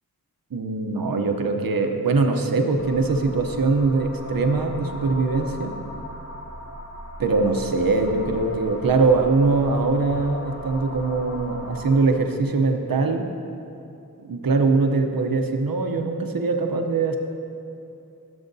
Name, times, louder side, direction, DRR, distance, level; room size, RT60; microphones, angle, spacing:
voice 1, 0.5-5.8 7.2-13.3 14.2-17.2, right 3 dB, 65° right, 4 dB, 0.8 m, -22 dB
sound 1, 2.8-12.0, left 1 dB, 40° left, 1.1 m, -38 dB
14.0 x 7.0 x 2.7 m, 2.7 s
wide cardioid pair, 45°, 38 cm